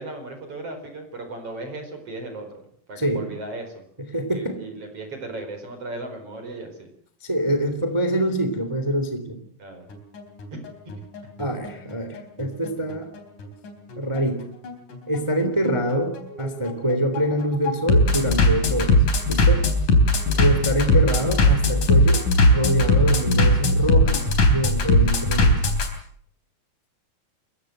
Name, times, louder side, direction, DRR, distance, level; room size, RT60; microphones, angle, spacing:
voice 1, 0.0-2.6 2.9-3.7 4.3-6.9 9.6-9.9 10.5-10.6 20.3-20.6, right 2 dB, 40° right, 6 dB, 5.3 m, -36 dB
voice 2, 4.0-4.6 7.2-9.4 11.4-13.1 14.0-14.4 15.1-19.0 19.3-19.6 20.4-25.6, equal, 10° right, 7 dB, 2.3 m, -25 dB
Bass drum, 9.9-25.9, left 1 dB, 60° left, 5.2 m, -19 dB
28.5 x 15.5 x 7.9 m, 0.64 s
omnidirectional pair, 4.1 m